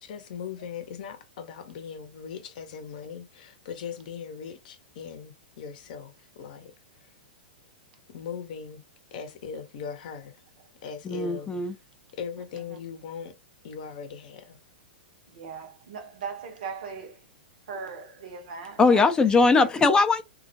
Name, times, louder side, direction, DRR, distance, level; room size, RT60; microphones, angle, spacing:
voice 1, 0.0-6.7 8.1-8.8 9.1-10.4 10.8-11.5 12.2-13.3 13.6-14.6, left 7 dB, 60° left, 0.6 m, -39 dB
voice 2, 11.1-11.7 18.8-20.2, left 4 dB, 15° left, 0.3 m, -20 dB
voice 3, 15.3-17.2 17.7-19.1 19.6-19.7, right 5 dB, 65° right, 0.8 m, -39 dB
2.2 x 2.1 x 2.7 m
hypercardioid pair, 120°, 5 cm